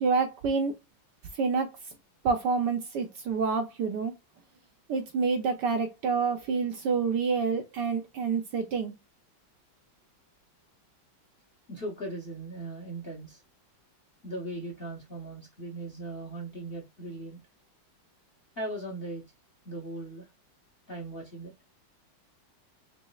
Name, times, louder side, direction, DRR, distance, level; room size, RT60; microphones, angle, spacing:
voice 1, 0.0-0.8 1.3-1.7 2.2-4.1 4.9-9.0, right 5 dB, 65° right, 1.2 m, -28 dB
voice 2, 11.7-13.4 14.2-17.4 18.5-19.3 19.6-20.3 20.9-21.5, right 1 dB, 35° left, 1.1 m, -38 dB
4.1 x 3.5 x 2.3 m
omnidirectional pair, 2.3 m